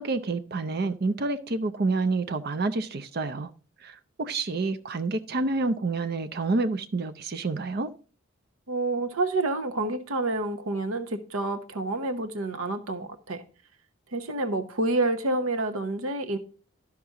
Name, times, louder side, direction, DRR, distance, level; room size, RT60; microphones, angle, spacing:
voice 1, 0.0-3.5 3.8-7.9, right 3 dB, 50° right, 0.5 m, -28 dB
voice 2, 8.7-13.4 14.1-16.4, right 2 dB, 90° right, 0.9 m, -28 dB
12.0 x 5.9 x 3.6 m
head